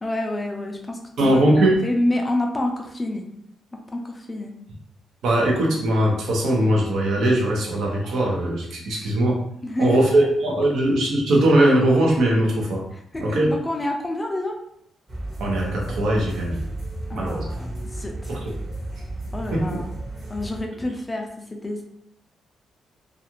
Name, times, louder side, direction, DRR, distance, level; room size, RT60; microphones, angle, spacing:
voice 1, 0.0-1.4 1.8-3.2 3.9-4.5 9.6-10.3 12.9-14.6 17.1-18.4 19.3-19.9 20.3-21.8, left 1 dB, 15° left, 2 dB, 0.4 m, -28 dB
voice 2, 1.2-1.8 5.2-9.4 9.8-12.8 13.2-13.5 15.4-16.6 17.1-17.4 18.3-18.4 19.5-19.8, right 1 dB, 75° right, -1 dB, 0.8 m, -20 dB
sound 1, 15.1-20.6, right 1 dB, 30° right, 0.9 m, -33 dB
2.4 x 2.4 x 2.9 m, 0.71 s
cardioid pair, 125°, 0 cm